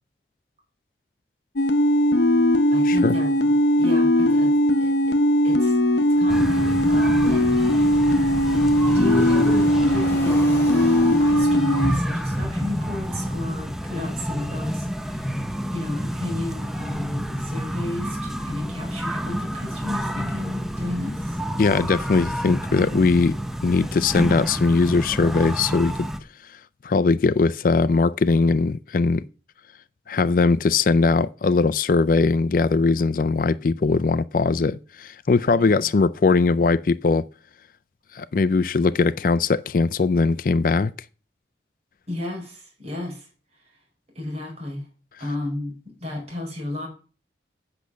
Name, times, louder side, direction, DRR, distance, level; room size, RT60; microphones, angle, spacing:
sound 1, 1.6-11.9, equal, 85° left, 0.8 m, -19 dB
voice 1, 2.7-5.2 5.4-8.0 8.9-15.4 15.7-21.4 35.6-35.9 42.1-43.7 44.1-44.9 45.2-45.7 46.0-46.9, left 1 dB, 35° right, 4.7 m, -33 dB
Fixed-wing aircraft airplane, 6.1-12.9, equal, 15° left, 2.8 m, -40 dB
sound 2, 6.3-26.2, equal, ahead, 0.6 m, -29 dB
voice 2, 21.6-23.3 23.6-25.9 26.8-29.2 30.1-37.2 38.1-40.9, left 4 dB, 50° left, 0.4 m, -20 dB
8.3 x 6.8 x 6.2 m
head